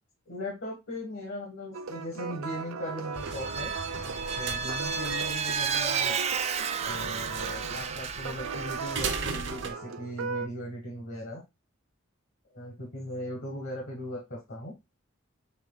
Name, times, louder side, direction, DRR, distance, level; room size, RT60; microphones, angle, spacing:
voice 1, 0.3-3.7 4.4-6.2 6.8-11.4 12.5-14.7, left 1 dB, 60° left, -1 dB, 1.3 m, -38 dB
sound 1, 1.7-10.5, right 5 dB, 80° right, 0.6 m, -38 dB
sound 2, 3.1-9.7, right 4 dB, 55° right, 0.8 m, -38 dB
Vehicle, 3.2-9.5, right 6 dB, 30° right, 0.4 m, -32 dB
5.9 x 3.7 x 2.2 m, 0.23 s
head